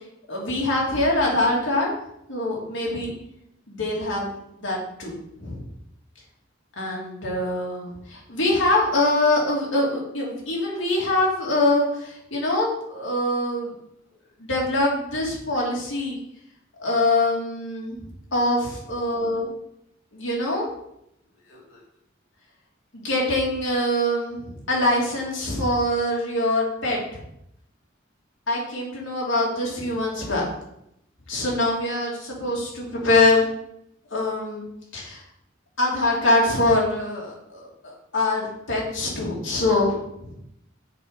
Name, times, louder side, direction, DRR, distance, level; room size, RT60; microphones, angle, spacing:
voice 1, 0.3-1.9 2.3-3.1 3.7-5.1 5.4-5.7 6.8-13.7 14.4-16.2 16.8-18.1 18.3-19.5 20.1-20.7 21.5-21.6 22.9-27.0 28.5-30.5 31.3-33.5 34.1-34.6 34.9-35.2 35.8-39.9 40.2-40.3, left 2 dB, 70° left, -3 dB, 2.8 m, -24 dB
7.1 x 5.5 x 5.3 m, 0.77 s
head